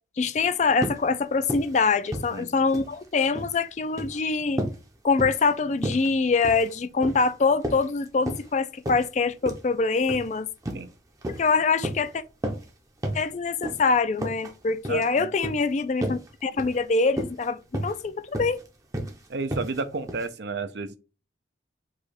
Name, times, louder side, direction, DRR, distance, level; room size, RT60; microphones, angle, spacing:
voice 1, 0.2-4.6 5.0-10.5 11.4-12.2 13.1-18.6, left 4 dB, 40° left, 0.4 m, -24 dB
sound 1, 0.8-1.1 1.4-1.8 2.1-2.9 3.2-3.6 3.9-4.2 4.6-4.8 5.2-5.5 5.8-6.1 6.4-6.7 7.0-7.3 7.6-8.5 8.9-9.1 9.5-9.7 10.1-10.3 10.6-10.9 11.2-11.5 11.8-12.1 12.4-12.7 13.0-13.3 13.6-13.8 14.2-14.5 14.8-15.1 15.4-15.6 16.0-16.3 16.6-16.8 17.1-17.5 17.7-18.0 18.3-18.6 18.9-19.1 19.5-19.8 20.1-20.3, right 1 dB, 20° right, 0.6 m, -32 dB
voice 2, 14.9-15.3 19.3-21.0, right 4 dB, 65° right, 0.6 m, -32 dB
4.8 x 2.3 x 4.2 m
head